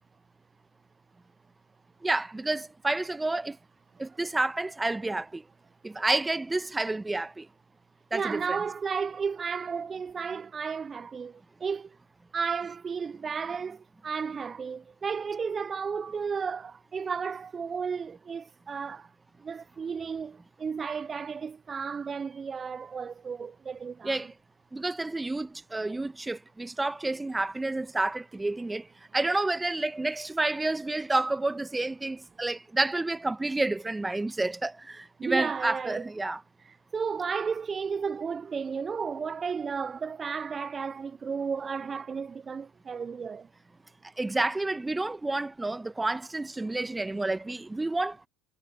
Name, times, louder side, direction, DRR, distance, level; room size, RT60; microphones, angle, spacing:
voice 1, 2.0-3.6 4.0-5.4 5.8-7.5 8.1-8.4 24.0-24.3 24.7-28.9 29.1-36.4 44.2-48.3, right 2 dB, 10° right, 1.3 m, -29 dB
voice 2, 8.1-12.0 12.3-19.1 19.4-24.3 35.2-36.0 36.6-43.5, right 6 dB, 30° right, 0.4 m, -33 dB
hypercardioid pair, 85°, 0 cm